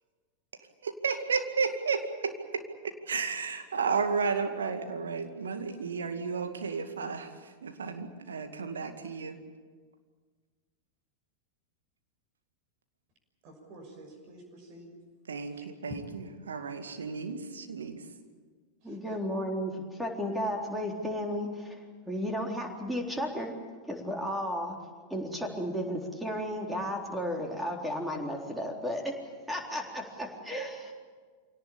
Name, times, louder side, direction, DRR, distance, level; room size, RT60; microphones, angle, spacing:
voice 1, 0.8-9.4 15.3-18.1, right 5 dB, 70° right, 7 dB, 2.2 m, -33 dB
voice 2, 13.4-14.9 15.6-15.7 18.8-19.2, right 1 dB, 40° right, 1 dB, 6.3 m, -51 dB
voice 3, 18.8-21.8 22.1-23.5 23.9-24.8 25.1-29.2 29.5-30.9, equal, 5° right, 1 dB, 3.9 m, -33 dB
25.5 x 18.0 x 8.8 m, 1.5 s
figure-of-eight pair, 90°, 0 cm